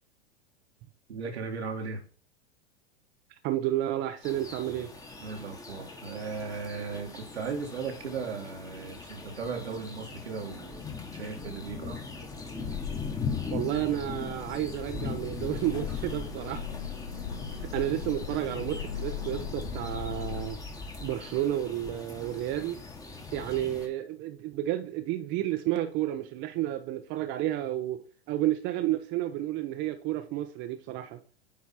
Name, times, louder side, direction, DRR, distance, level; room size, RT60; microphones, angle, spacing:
voice 1, 1.1-2.0 5.2-12.0, right 5 dB, 80° right, 1.9 m, -37 dB
voice 2, 3.4-4.9 11.5-11.7 13.5-16.7 17.7-20.6 21.0-22.8 23.3-31.2, right 13 dB, 35° right, 0.8 m, -31 dB
sound 1, 4.2-23.9, left 4 dB, 10° left, 1.4 m, -40 dB
sound 2, 11.4-20.5, left 7 dB, 85° left, 1.4 m, -39 dB
9.4 x 3.5 x 4.3 m
hypercardioid pair, 105°, 32 cm